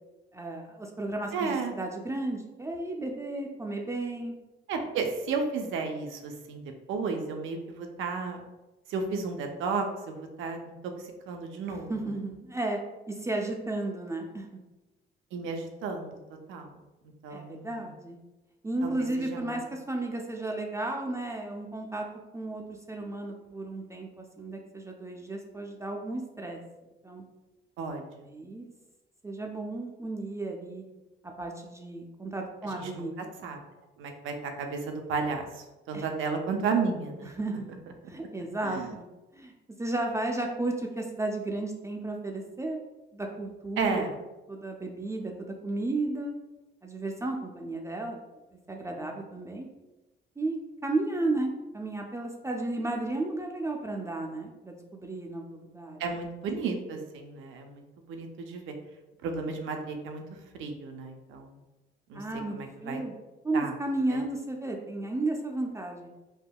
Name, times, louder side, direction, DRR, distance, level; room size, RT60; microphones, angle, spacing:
voice 1, 0.3-4.4 11.7-12.8 13.1-14.5 17.3-18.2 18.6-22.0 22.3-22.6 22.9-26.6 27.0-27.2 28.3-28.7 29.2-30.8 31.4-33.3 35.9-36.1 37.2-37.7 38.1-39.1 39.3-39.5 39.8-42.8 43.1-44.0 44.5-46.3 46.8-48.2 48.7-49.7 50.4-50.6 50.8-56.0 62.1-62.6 62.8-63.2 63.4-66.1, right 2 dB, 15° right, 1 dB, 0.3 m, -33 dB
voice 2, 1.3-1.8 4.7-6.6 6.9-8.4 8.9-10.6 11.0-12.1 15.3-16.2 16.5-16.8 17.2-17.9 18.8-19.6 27.8-28.3 32.6-33.1 33.4-33.6 34.0-37.3 38.6-38.9 43.8-44.1 56.0-58.7 59.2-60.2 60.5-61.6 62.1-62.2 62.5-63.0 63.5-63.7 64.1-64.2, right 4 dB, 80° right, 4 dB, 0.5 m, -33 dB
3.4 x 2.1 x 2.2 m, 1.0 s
cardioid pair, 90°, 20 cm